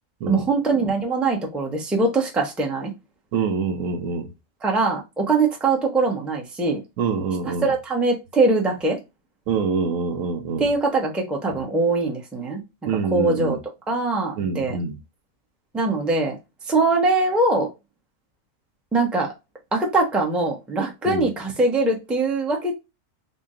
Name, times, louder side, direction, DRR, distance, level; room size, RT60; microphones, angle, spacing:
voice 1, 0.3-2.9 4.6-6.8 7.6-9.0 10.6-12.6 13.1-13.6 13.9-14.8 15.7-16.4 16.7-17.7 18.9-19.3 19.7-22.7, right 3 dB, ahead, 0.5 m, -22 dB
voice 2, 3.3-4.3 7.0-7.7 9.5-10.7 12.9-13.6 14.4-15.0 21.1-21.3, right 5 dB, 75° right, 1.1 m, -25 dB
4.1 x 2.1 x 3.6 m
omnidirectional pair, 1.4 m